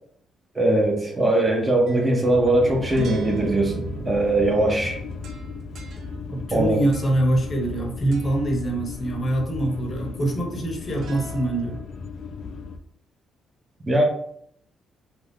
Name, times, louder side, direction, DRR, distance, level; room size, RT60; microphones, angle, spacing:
voice 1, 0.5-5.0 6.5-6.8 13.8-14.0, right 1 dB, 20° right, 1 dB, 0.8 m, -21 dB
sound 1, 1.5-7.8 8.1-8.5 10.9-11.8, right 3 dB, 70° right, 0.4 m, -37 dB
sound 2, 2.3-12.8, left 4 dB, 65° left, 0.3 m, -36 dB
voice 2, 6.3-11.8, right 1 dB, 35° left, 2 dB, 0.8 m, -24 dB
2.5 x 2.3 x 3.4 m, 0.69 s
cardioid pair, 90°, 0 cm